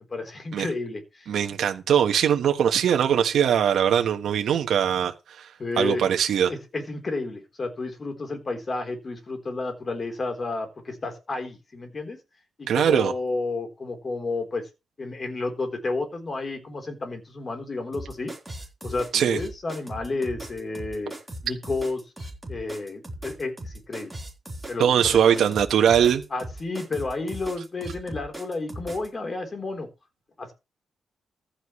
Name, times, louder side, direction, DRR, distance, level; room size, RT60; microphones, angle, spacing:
voice 1, 0.1-1.3 5.6-6.1 6.5-12.2 12.6-14.6 15.0-18.3 18.8-21.1 21.4-22.0 22.5-24.1 24.7-25.5 26.3-29.9 30.4-30.5, left 3 dB, 30° left, 3.8 m, -31 dB
voice 2, 1.3-5.5 5.8-6.5 12.7-13.1 19.1-19.4 24.8-26.2, right 9 dB, 75° right, 1.3 m, -21 dB
sound 1, 17.9-29.1, right 1 dB, 5° right, 4.0 m, -38 dB
15.0 x 11.5 x 3.2 m
cardioid pair, 120°, 0 cm